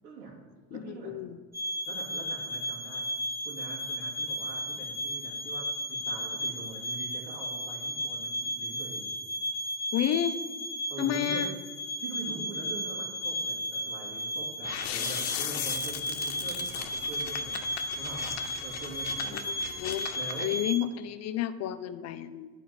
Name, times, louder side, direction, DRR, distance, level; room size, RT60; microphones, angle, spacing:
voice 1, 0.0-0.4 0.7-1.2 1.8-3.1 3.4-9.1 10.9-11.5 12.0-17.6 17.9-19.8 20.1-20.6, right 3 dB, 85° right, -3 dB, 2.6 m, -43 dB
voice 2, 0.7-1.4 9.9-10.4 11.0-11.5 19.3-20.1 20.4-22.5, left 11 dB, 35° left, 12 dB, 0.5 m, -31 dB
sound 1, 1.5-20.8, equal, 5° right, 1.0 m, -34 dB
sound 2, 14.6-20.5, left 11 dB, 60° left, 0.9 m, -37 dB
9.1 x 4.5 x 5.8 m, 1.4 s
hypercardioid pair, 90°, 48 cm